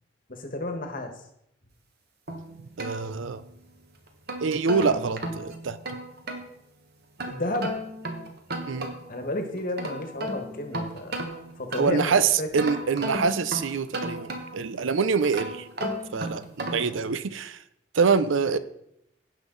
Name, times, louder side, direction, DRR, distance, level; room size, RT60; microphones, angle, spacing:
voice 1, 0.3-1.1 7.2-7.7 9.1-11.1 11.5-12.5 16.8-17.0, left 1 dB, 45° left, 5 dB, 1.5 m, -32 dB
sound 1, 2.3-3.6 4.1-6.5 7.2-9.2 9.6-12.1 12.6-14.7 15.2-17.0, right 1 dB, 55° right, 1.4 m, -34 dB
voice 2, 2.8-3.4 4.4-5.8 8.7-8.9 11.8-15.7 16.1-17.6 17.9-18.6, right 5 dB, 85° right, 14 dB, 0.6 m, -25 dB
17.0 x 5.6 x 4.0 m, 0.78 s
head